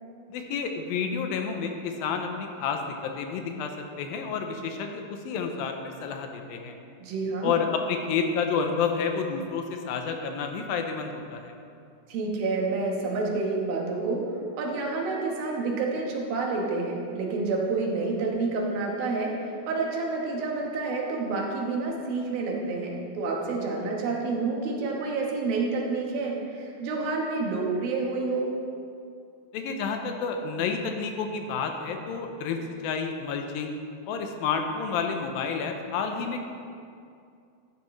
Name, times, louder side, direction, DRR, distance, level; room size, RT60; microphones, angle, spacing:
voice 1, 0.3-3.7 4.0-6.8 7.4-11.5 29.5-33.7 34.1-36.5, left 5 dB, 85° left, 4 dB, 2.6 m, -30 dB
voice 2, 7.0-7.6 12.1-14.2 14.5-28.6, right 3 dB, 90° right, -1 dB, 3.2 m, -29 dB
12.5 x 10.0 x 3.2 m, 2.4 s
omnidirectional pair, 4.1 m